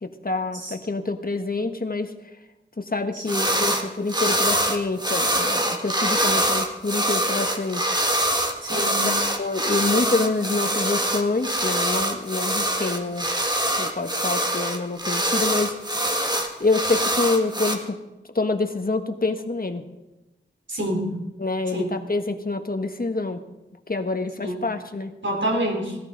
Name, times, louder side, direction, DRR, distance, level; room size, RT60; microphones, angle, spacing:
voice 1, 0.0-2.1 2.8-7.9 9.3-13.3 13.8-15.7 16.6-18.0 18.3-19.8 21.4-23.4 23.9-25.1, left 3 dB, 50° left, 7 dB, 1.3 m, -26 dB
voice 2, 3.1-3.6 8.6-9.1 20.7-21.2 21.7-21.9 24.4-24.5 25.2-26.0, right 1 dB, 70° right, 0 dB, 3.8 m, -27 dB
sound 1, 3.3-3.8 4.1-17.7, right 1 dB, 20° right, 1.8 m, -24 dB
18.5 x 13.5 x 3.9 m, 1.0 s
wide cardioid pair, 50°, 20 cm